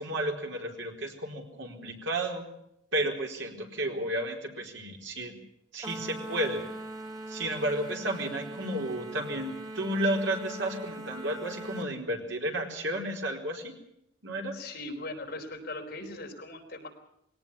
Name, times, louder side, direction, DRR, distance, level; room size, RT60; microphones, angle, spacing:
voice 1, 0.0-2.5 2.9-5.3 5.7-6.7 7.3-13.7 14.2-14.6, right 1 dB, 75° right, 2 dB, 4.4 m, -32 dB
sound 1, 5.8-11.9, right 1 dB, 20° right, 2.1 m, -41 dB
voice 2, 14.5-16.9, left 2 dB, 50° left, 2 dB, 4.5 m, -39 dB
22.0 x 18.0 x 7.1 m, 0.76 s
head